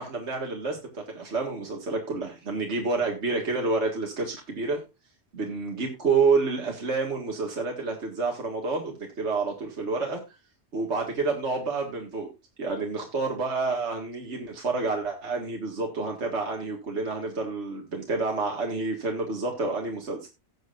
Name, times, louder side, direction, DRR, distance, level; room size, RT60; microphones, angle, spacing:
voice 1, 0.0-4.8 5.3-10.2 10.7-12.3 12.6-20.3, right 4 dB, 70° right, 2 dB, 2.2 m, -29 dB
17.5 x 7.8 x 2.5 m, 0.25 s
omnidirectional pair, 1.2 m